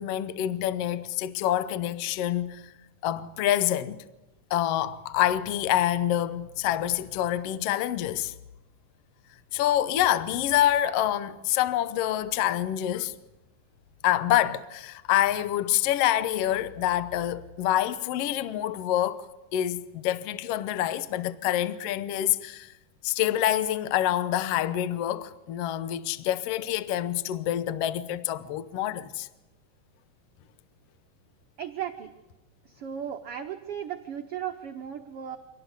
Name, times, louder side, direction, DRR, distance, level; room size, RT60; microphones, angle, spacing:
voice 1, 0.0-2.6 3.0-4.0 4.5-8.3 9.5-13.1 14.0-19.3 19.5-22.7 23.0-29.3, left 12 dB, 85° left, 1.3 m, -26 dB
voice 2, 31.6-32.1 32.6-35.4, right 9 dB, 70° right, 1.4 m, -36 dB
25.5 x 18.0 x 8.2 m
omnidirectional pair, 4.0 m